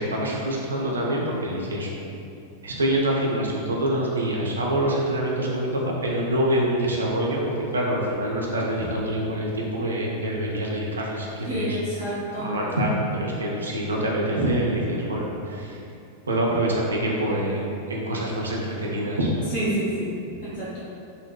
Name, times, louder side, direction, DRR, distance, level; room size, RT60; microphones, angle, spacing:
voice 1, 0.0-1.9 2.6-11.8 12.4-15.8 16.2-19.3, right 1 dB, 70° right, -3 dB, 0.4 m, -25 dB
voice 2, 11.4-12.5 19.5-20.1 20.4-20.8, right 1 dB, 55° left, -10 dB, 1.4 m, -28 dB
3.8 x 2.0 x 2.2 m, 2.6 s
figure-of-eight pair, 90°, 0 cm